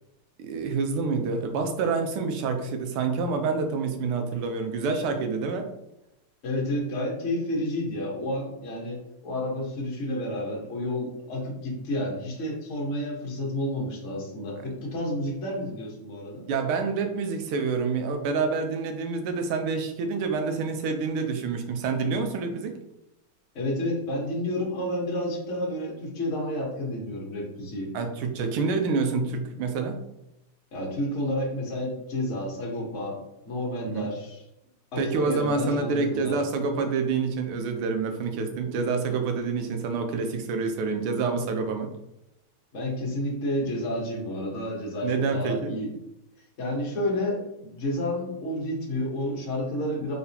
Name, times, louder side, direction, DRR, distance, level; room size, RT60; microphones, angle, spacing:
voice 1, 0.4-5.7 16.5-22.8 27.9-30.0 33.9-34.1 35.0-41.9 45.0-45.7, right 4 dB, 85° right, 5 dB, 1.6 m, -27 dB
voice 2, 6.4-9.0 9.2-16.4 23.5-27.9 30.7-34.4 34.9-36.4 42.7-45.9 46.6-50.1, left 1 dB, 40° left, -3 dB, 1.3 m, -30 dB
4.1 x 3.9 x 2.7 m, 0.86 s
omnidirectional pair, 2.4 m